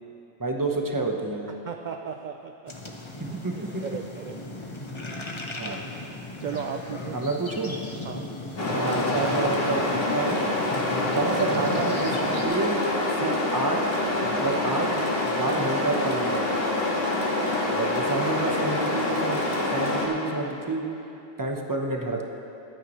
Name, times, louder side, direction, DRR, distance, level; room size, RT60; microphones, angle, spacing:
voice 1, 0.4-1.5 3.2-3.5 5.6-5.8 7.1-7.8 8.7-10.4 11.1-12.8 13.2-13.8 14.2-16.4 17.7-19.4 19.7-20.9 21.4-22.2, right 2 dB, 20° right, 1 dB, 0.9 m, -29 dB
voice 2, 1.6-2.9 3.3-3.4 3.8-4.4 6.4-7.2 8.0-8.3 18.4-18.5, right 7 dB, 70° right, 5 dB, 0.4 m, -36 dB
sound 1, 2.7-12.5, left 2 dB, 25° left, 0.9 m, -37 dB
sound 2, 8.6-20.1, left 1 dB, 50° left, 1.9 m, -26 dB
22.0 x 9.0 x 3.2 m, 2.9 s
omnidirectional pair, 1.3 m